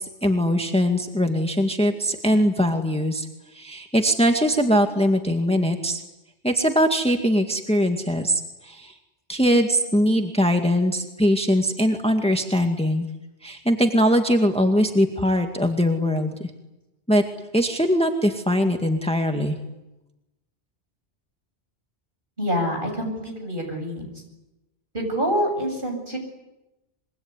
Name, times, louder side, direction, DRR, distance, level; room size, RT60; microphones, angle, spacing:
voice 1, 0.0-3.3 3.5-6.0 6.4-8.9 9.3-13.1 13.4-16.4 17.1-17.2 17.5-19.6, equal, 5° left, 4 dB, 2.0 m, -21 dB
voice 2, 22.4-24.1 24.9-26.2, equal, 55° right, 3 dB, 8.1 m, -26 dB
25.5 x 23.5 x 9.7 m, 0.97 s
omnidirectional pair, 1.1 m